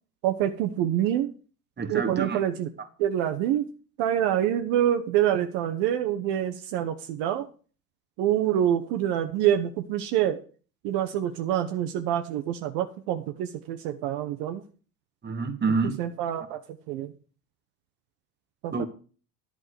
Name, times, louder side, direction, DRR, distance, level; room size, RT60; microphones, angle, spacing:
voice 1, 0.2-1.3 1.9-2.7 3.0-3.7 4.0-7.5 8.2-10.4 10.8-14.6 16.0-16.6 16.9-17.1 18.6-18.7, right 11 dB, 55° right, 6 dB, 1.1 m, -26 dB
voice 2, 1.8-2.4 15.2-16.0 18.7-18.8, right 4 dB, 20° right, 7 dB, 1.7 m, -27 dB
11.0 x 5.0 x 7.9 m, 0.39 s
hypercardioid pair, 75°, 48 cm